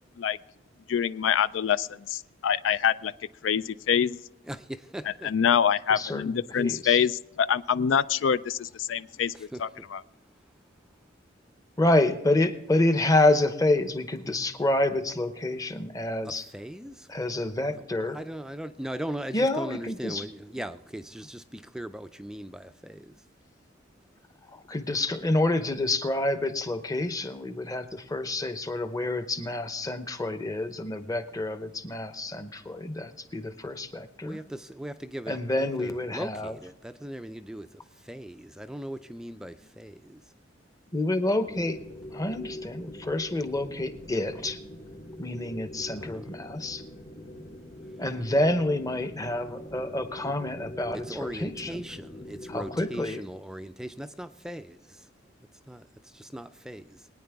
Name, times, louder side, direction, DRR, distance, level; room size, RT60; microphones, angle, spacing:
voice 1, 0.9-3.1 3.4-4.2 5.2-10.0, left 8 dB, 80° left, 16 dB, 0.4 m, -25 dB
voice 2, 4.4-5.3 9.3-9.9 15.5-15.6 16.2-17.1 17.8-17.9 18.1-23.2 34.2-40.2 46.0-46.3 50.9-55.1 55.7-57.1, right 1 dB, 5° right, 9 dB, 0.3 m, -39 dB
voice 3, 5.9-7.1 11.8-16.5 17.1-18.2 19.3-20.2 24.5-34.4 35.3-36.6 40.9-41.8 42.1-44.6 45.2-46.8 48.0-51.8 52.5-53.2, left 2 dB, 20° left, 10 dB, 0.8 m, -28 dB
sound 1, 41.4-53.1, left 1 dB, 45° left, 3.3 m, -43 dB
22.0 x 9.5 x 3.5 m, 0.90 s
head